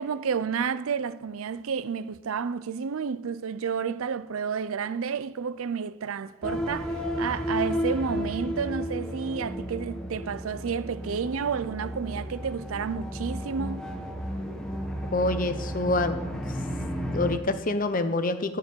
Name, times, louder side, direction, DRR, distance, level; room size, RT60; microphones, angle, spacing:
voice 1, 0.0-13.9, right 6 dB, 75° right, 0.5 m, -31 dB
sound 1, 6.4-17.4, equal, 5° left, 1.0 m, -33 dB
voice 2, 15.1-16.2 17.1-18.6, left 2 dB, 40° left, 0.8 m, -26 dB
14.0 x 4.8 x 8.6 m
head